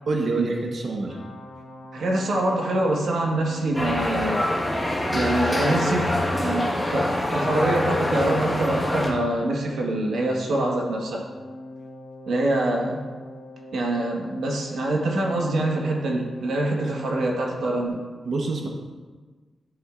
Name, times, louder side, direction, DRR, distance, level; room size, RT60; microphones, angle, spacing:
voice 1, 0.1-1.2 18.2-18.7, right 3 dB, 60° right, 1 dB, 1.1 m, -26 dB
sound 1, 1.1-17.9, left 1 dB, 85° left, 1.2 m, -42 dB
voice 2, 1.9-4.4 5.1-11.2 12.3-13.0 13.7-18.0, right 1 dB, 80° right, -1 dB, 1.5 m, -25 dB
sound 2, 3.7-9.1, left 1 dB, 5° left, 1.5 m, -25 dB
11.0 x 8.8 x 2.5 m, 1.4 s
wide cardioid pair, 130°, 0 cm